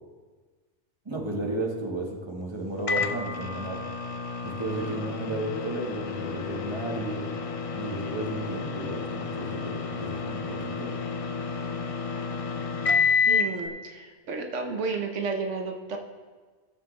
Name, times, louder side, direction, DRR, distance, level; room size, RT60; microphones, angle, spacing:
voice 1, 1.0-3.8 4.4-7.3 7.7-10.9, right 2 dB, 25° right, -1 dB, 1.5 m, -33 dB
Microwave oven, 2.9-13.6, left 5 dB, 50° left, 0.4 m, -30 dB
voice 2, 13.3-16.0, right 4 dB, 90° right, 3 dB, 1.3 m, -32 dB
16.5 x 7.1 x 3.3 m, 1.4 s
omnidirectional pair, 1.2 m